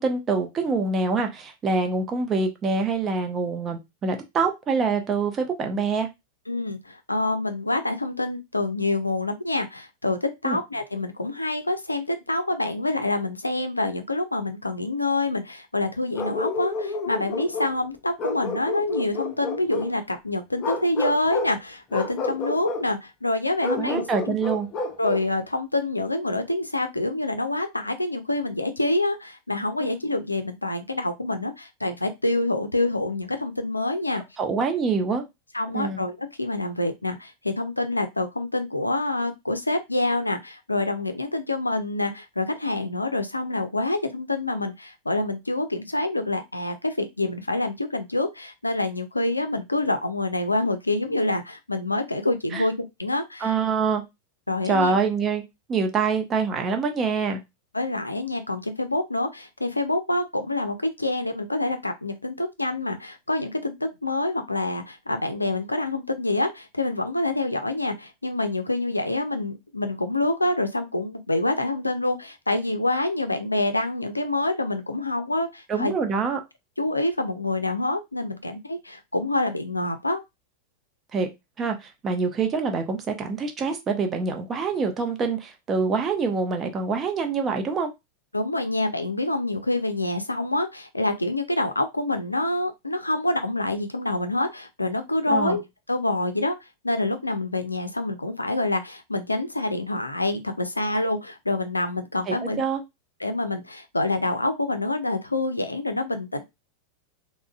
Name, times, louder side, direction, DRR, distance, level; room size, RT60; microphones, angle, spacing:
voice 1, 0.0-6.1 10.4-10.6 23.8-24.7 34.4-35.2 35.7-36.0 52.5-52.6 53.4-54.0 54.6-55.4 55.7-57.4 75.7-76.4 81.1-81.3 81.6-87.9 95.3-95.6 102.3-102.8, right 4 dB, 25° right, 5 dB, 0.6 m, -25 dB
voice 2, 6.5-24.4 25.0-34.2 35.5-53.5 54.5-54.9 57.7-75.9 76.8-80.2 88.3-95.6 95.9-96.5 96.8-102.6 103.2-106.4, left 2 dB, 85° left, 8 dB, 0.4 m, -26 dB
Bark, 16.1-17.8 18.2-19.9 20.6-21.6 21.9-22.9 23.6-25.3, left 3 dB, 35° left, 0.6 m, -30 dB
3.6 x 2.1 x 2.3 m, 0.21 s
figure-of-eight pair, 90°, 0 cm